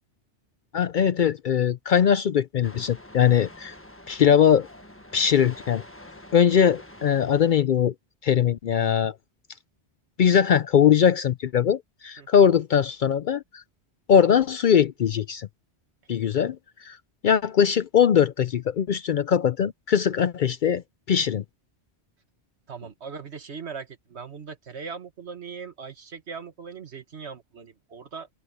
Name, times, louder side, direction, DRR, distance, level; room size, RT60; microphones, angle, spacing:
voice 1, 0.7-3.7 4.1-4.7 5.1-5.8 6.3-7.9 8.2-9.1 10.2-13.6 14.1-15.5 16.1-16.6 16.8-17.0 17.2-20.8 21.1-21.4, left 8 dB, 60° left, 0.6 m, -21 dB
sound 1, 2.6-7.6, left 1 dB, 10° left, 1.3 m, -46 dB
voice 2, 22.7-28.3, right 5 dB, 70° right, 1.8 m, -39 dB
open air
omnidirectional pair, 1.1 m